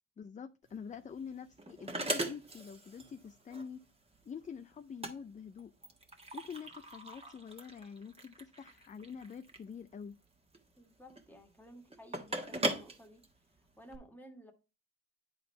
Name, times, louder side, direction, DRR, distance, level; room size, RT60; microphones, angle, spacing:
voice 1, 0.2-3.8 4.3-5.7 6.3-10.1, left 6 dB, 25° left, 0.4 m, -46 dB
sound 1, 0.7-14.0, right 2 dB, 20° right, 1.4 m, -41 dB
voice 2, 10.8-13.2 13.6-14.5, equal, 5° left, 1.7 m, -55 dB
10.0 x 4.0 x 3.2 m
cardioid pair, 90°, 30 cm